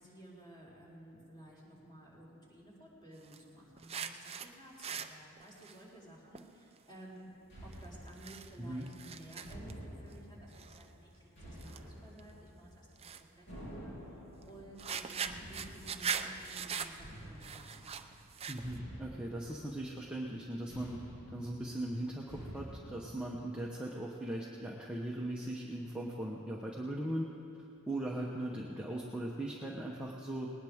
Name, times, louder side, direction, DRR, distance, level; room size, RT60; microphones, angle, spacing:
voice 1, 0.0-7.3 7.6-14.2 14.5-18.0, right 1 dB, 20° left, -7 dB, 4.0 m, -54 dB
sound 1, 3.2-3.4 3.8-4.5 4.7-5.8 6.3-6.4 6.8-6.9 7.7-7.8 8.1-8.5 8.8-9.7 10.1-10.2 10.5-10.8 11.6-11.8 12.2-12.3 13.0-13.2 14.4-14.5 14.8-18.8, right 6 dB, 25° right, 0.5 m, -41 dB
sound 2, 7.5-23.1, equal, 55° left, 3.2 m, -51 dB
voice 2, 18.5-21.0 21.3-27.3 27.9-30.5, right 1 dB, 5° right, -3 dB, 1.0 m, -39 dB
19.5 x 19.0 x 3.6 m, 2.8 s
head